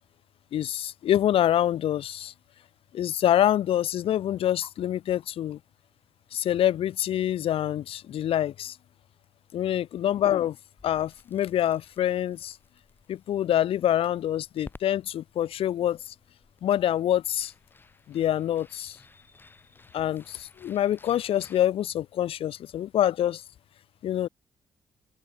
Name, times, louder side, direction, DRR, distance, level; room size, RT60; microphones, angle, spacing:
voice 1, 0.5-2.3 2.9-5.6 6.3-8.8 9.5-10.6 10.8-12.5 13.1-16.0 16.6-17.5 18.1-19.0 19.9-23.4 24.0-24.3, left 11 dB, 70° left, 0.6 m, -26 dB
Crackle, 10.8-21.6, left 3 dB, 20° left, 2.9 m, -55 dB
open air
cardioid pair, 120°, 10 cm